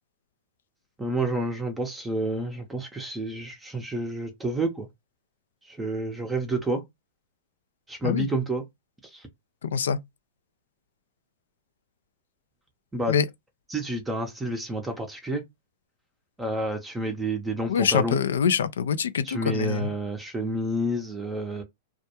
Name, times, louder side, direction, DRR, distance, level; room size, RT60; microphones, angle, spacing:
voice 1, 1.0-4.9 5.7-6.8 7.9-8.6 9.1-9.3 12.9-13.2 13.7-15.4 16.4-18.2 19.2-21.6, right 1 dB, 10° right, 0.6 m, -29 dB
voice 2, 9.6-10.0 13.1-13.3 17.7-19.9, left 7 dB, 80° left, 0.3 m, -24 dB
2.3 x 2.1 x 2.8 m
hypercardioid pair, 120°, 0 cm